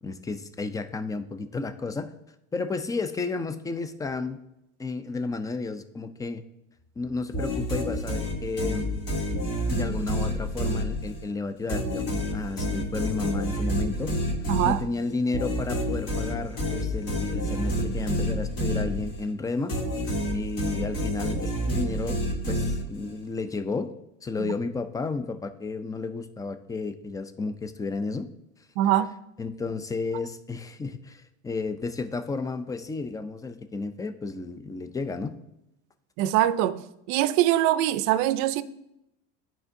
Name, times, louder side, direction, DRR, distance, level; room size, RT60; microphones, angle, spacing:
voice 1, 0.0-2.1 2.5-4.4 4.8-6.4 7.0-8.9 9.7-14.1 14.6-19.7 20.0-22.2 22.5-23.9 24.2-28.3 29.4-35.4, left 3 dB, 10° left, 0.4 m, -32 dB
sound 1, 7.3-11.3 11.7-19.3 19.7-23.2, equal, 45° left, 2.5 m, -29 dB
voice 2, 14.5-14.8 24.4-24.5 28.8-29.1 36.2-36.8 37.1-38.6, right 13 dB, 60° right, 0.5 m, -23 dB
10.5 x 4.4 x 2.6 m
supercardioid pair, 105°, 33 cm